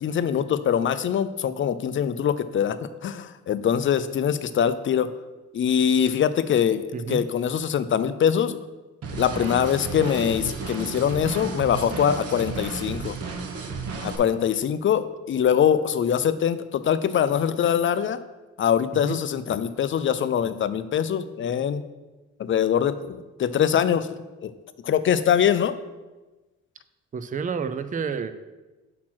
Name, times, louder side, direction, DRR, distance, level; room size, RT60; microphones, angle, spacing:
voice 1, 0.0-2.8 3.0-5.1 5.5-8.6 9.1-13.2 14.0-18.2 18.6-21.8 22.4-24.1 24.4-24.5 24.8-25.8, left 8 dB, 40° left, 13 dB, 0.5 m, -23 dB
voice 2, 6.9-7.2 18.9-19.2 27.1-28.3, right 6 dB, 25° right, 12 dB, 0.5 m, -29 dB
sound 1, 9.0-14.2, right 4 dB, 55° right, 1.2 m, -33 dB
5.9 x 4.4 x 6.0 m, 1.2 s
cardioid pair, 90°, 30 cm